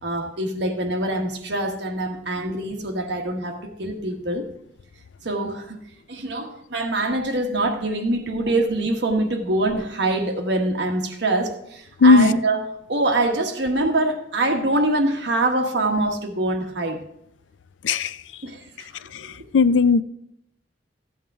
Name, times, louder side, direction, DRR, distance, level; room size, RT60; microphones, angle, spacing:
voice 1, 0.0-4.5 5.2-5.8 6.1-12.6 12.9-17.0 18.4-18.9 19.2-19.3, right 2 dB, 65° right, 1.3 m, -24 dB
voice 2, 12.0-12.3 17.8-18.2 19.1-20.0, left 4 dB, 85° left, 0.4 m, -16 dB
14.5 x 8.6 x 3.6 m
head